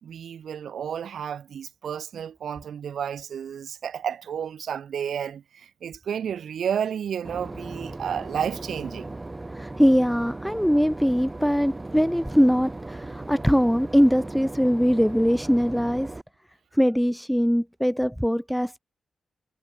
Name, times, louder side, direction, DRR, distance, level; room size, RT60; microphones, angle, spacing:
voice 1, 0.0-9.2, right 8 dB, 70° right, 1.2 m, -31 dB
Boat Water vehicle / Engine, 7.2-16.2, right 2 dB, 20° right, 4.5 m, -37 dB
voice 2, 9.5-16.1 16.8-18.8, equal, ahead, 0.5 m, -22 dB
cardioid pair, 110°, 0 cm